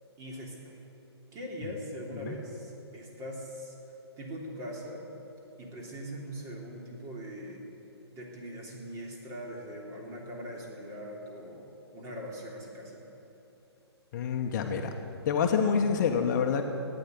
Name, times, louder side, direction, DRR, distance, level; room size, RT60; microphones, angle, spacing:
voice 1, 0.2-0.8 1.3-3.7 4.2-5.0 5.6-7.6 8.1-13.1, equal, 20° right, -1 dB, 3.2 m, -41 dB
voice 2, 14.1-14.9 15.2-16.6, left 6 dB, 45° left, 4 dB, 1.2 m, -27 dB
15.0 x 10.0 x 9.5 m, 2.8 s
hypercardioid pair, 140°, 14 cm